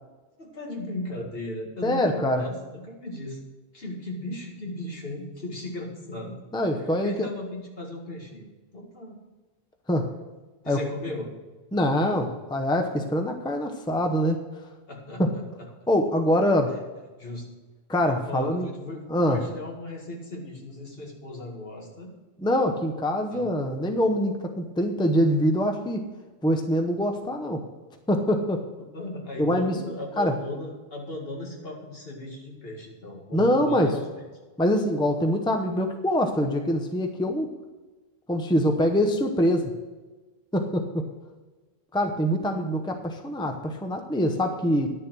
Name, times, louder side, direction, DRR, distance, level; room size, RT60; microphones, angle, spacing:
voice 1, 0.4-3.4 3.7-6.4 7.0-8.4 8.7-9.2 10.6-11.3 14.9-15.4 16.7-16.8 17.2-17.5 18.2-22.1 23.3-23.5 28.8-34.0, left 1 dB, 65° left, -1 dB, 2.2 m, -36 dB
voice 2, 1.8-2.4 6.5-7.3 9.9-10.1 10.7-10.8 11.7-14.4 15.2-15.3 15.9-16.7 17.9-18.7 19.1-19.4 22.4-26.0 26.4-27.6 28.1-28.6 29.4-29.8 30.2-30.3 33.3-33.9 34.6-37.5 38.3-39.7 40.5-41.1 41.9-44.9, equal, 5° left, 5 dB, 0.7 m, -24 dB
11.0 x 6.8 x 6.1 m, 1.2 s
omnidirectional pair, 1.1 m